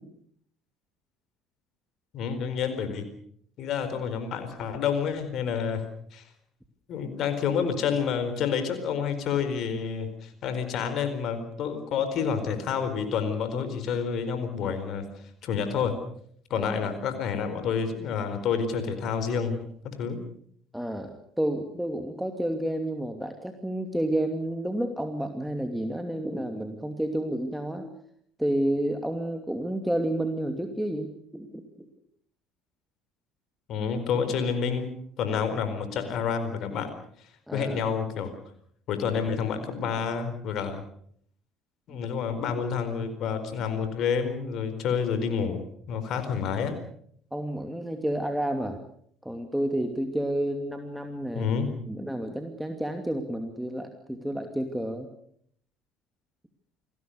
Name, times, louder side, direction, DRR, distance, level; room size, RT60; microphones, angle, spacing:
voice 1, 2.1-3.1 3.6-5.9 6.1-6.2 6.9-15.1 15.4-16.0 16.5-20.2 33.7-36.9 37.5-38.3 38.9-40.8 41.9-46.8 51.3-51.7, left 6 dB, 50° left, 9 dB, 4.4 m, -29 dB
voice 2, 20.7-27.9 28.4-31.6 37.5-37.8 47.3-48.8 49.2-51.5 51.9-55.1, right 1 dB, 5° right, 5 dB, 2.7 m, -30 dB
29.0 x 20.5 x 6.7 m, 0.65 s
figure-of-eight pair, 60°, 0 cm